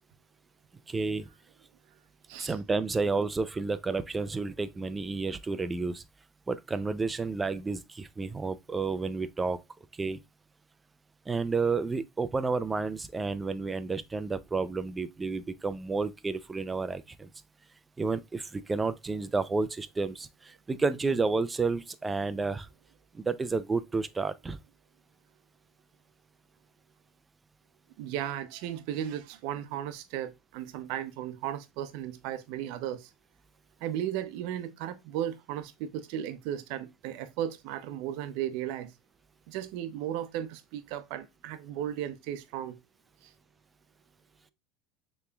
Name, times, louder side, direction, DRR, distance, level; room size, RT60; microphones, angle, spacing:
voice 1, 0.9-1.3 2.4-6.0 6.5-9.6 10.0-10.2 11.3-17.3 18.0-22.7 23.1-24.6, right 4 dB, 15° right, 0.4 m, -31 dB
voice 2, 28.0-33.1 33.8-38.9 39.5-42.8 43.2-43.3, right 11 dB, 70° right, 0.6 m, -35 dB
6.7 x 3.0 x 2.2 m
supercardioid pair, 115°, 0 cm